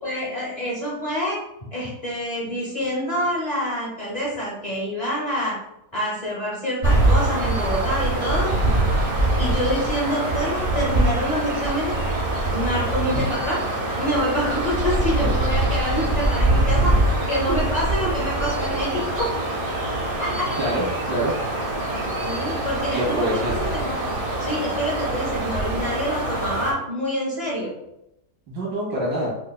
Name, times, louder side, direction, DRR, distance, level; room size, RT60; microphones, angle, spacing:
voice 1, 0.0-1.4 1.7-5.6 5.9-8.5 9.4-11.9 12.5-13.6 13.9-17.0 17.3-19.3 20.2-20.5 22.2-23.9 24.4-27.7, equal, 40° left, -6 dB, 0.6 m, -26 dB
sound 1, 6.8-26.7, right 2 dB, 50° right, 0.6 m, -23 dB
voice 2, 20.6-21.4 22.9-23.7 28.5-29.3, right 1 dB, 80° right, -6 dB, 2.0 m, -26 dB
4.5 x 2.4 x 2.2 m, 0.84 s
omnidirectional pair, 1.9 m